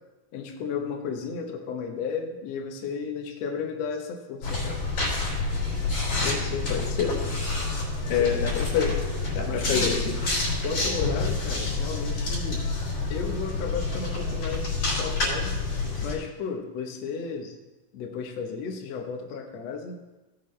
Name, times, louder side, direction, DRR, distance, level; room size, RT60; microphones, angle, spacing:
voice 1, 0.3-4.8 8.0-8.4 9.4-10.1 10.6-12.7 13.1-15.6 16.0-17.5 17.9-20.0, left 5 dB, 70° left, 2 dB, 1.6 m, -33 dB
sound 1, 4.4-16.2, left 3 dB, 35° left, 4.8 m, -28 dB
voice 2, 6.2-7.1 8.1-9.0 9.3-9.9, left 7 dB, 85° left, 2 dB, 3.4 m, -27 dB
17.5 x 7.7 x 3.3 m, 1.1 s
omnidirectional pair, 4.5 m